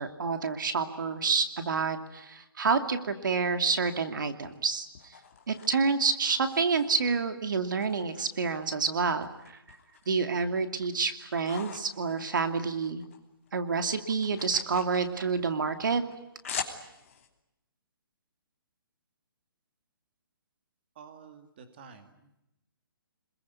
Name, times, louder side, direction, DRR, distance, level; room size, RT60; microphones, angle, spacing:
voice 1, 0.0-5.1 5.5-9.3 9.7-9.8 10.1-13.0 13.5-16.0, right 5 dB, 55° right, 8 dB, 2.6 m, -28 dB
sound 1, 4.4-7.3 7.8-8.9 9.2-10.2 10.6-13.2 13.5-17.3, left 7 dB, 35° left, 3.1 m, -44 dB
voice 2, 21.0-22.4, right 6 dB, 25° right, 8 dB, 2.3 m, -51 dB
27.5 x 22.0 x 9.6 m, 0.89 s
hypercardioid pair, 175°, 12 cm